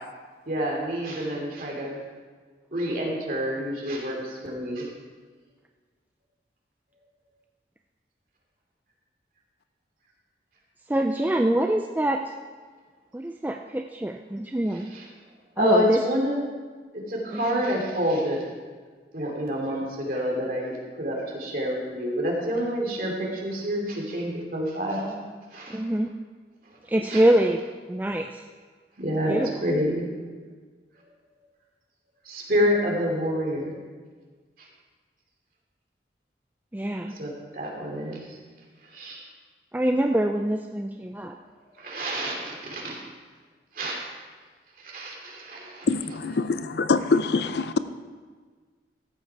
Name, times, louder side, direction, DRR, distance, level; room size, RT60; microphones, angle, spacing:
voice 1, 0.5-2.0 2.7-4.9 14.9-15.0 15.6-16.5 17.1-18.4 19.1-25.1 25.5-25.8 27.1-27.2 29.0-29.4 29.6-30.1 32.2-33.8 37.2-38.2 38.9-39.2 41.7-43.0 43.7-44.0 44.8-45.9, equal, 50° right, -2 dB, 2.8 m, -28 dB
voice 2, 10.9-12.2 13.1-14.9 15.6-16.0 17.3-17.5 25.7-26.1 26.9-28.4 29.3-29.5 36.7-37.1 39.7-41.4, right 1 dB, 10° right, 4 dB, 0.4 m, -25 dB
voice 3, 45.9-47.8, left 4 dB, 70° left, 12 dB, 0.5 m, -24 dB
14.0 x 8.1 x 4.7 m, 1.5 s
head